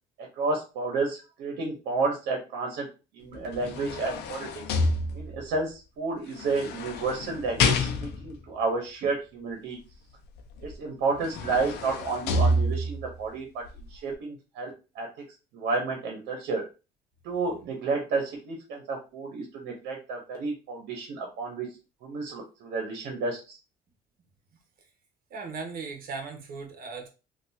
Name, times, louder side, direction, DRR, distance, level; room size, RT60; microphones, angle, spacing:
voice 1, 0.4-2.9 3.1-4.6 5.1-9.8 10.6-13.6 13.9-14.7 14.9-15.1 15.5-16.6 17.2-21.7 22.0-23.6, right 3 dB, 85° right, 2 dB, 1.0 m, -31 dB
sound 1, 3.3-5.5 6.4-8.4 10.6-10.7 11.1-13.1 13.7-13.8, left 2 dB, 80° left, 0.6 m, -28 dB
voice 2, 25.3-27.1, right 4 dB, 60° right, 4 dB, 1.1 m, -37 dB
3.3 x 2.5 x 2.8 m, 0.30 s
cardioid pair, 110°, 17 cm